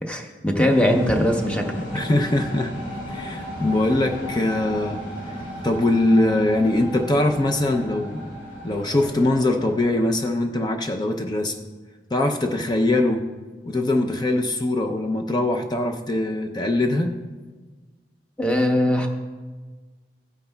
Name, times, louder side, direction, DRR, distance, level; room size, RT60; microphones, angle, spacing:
voice 1, 0.0-1.8 18.4-19.1, left 1 dB, 5° left, 2 dB, 0.9 m, -21 dB
sound 1, 0.7-10.3, equal, 85° left, 2.7 m, -35 dB
voice 2, 1.9-2.7 3.1-5.0 5.6-8.3 8.6-11.5 12.1-13.3 13.7-17.1, left 1 dB, 25° left, 4 dB, 0.5 m, -22 dB
15.0 x 9.2 x 2.3 m, 1.4 s
head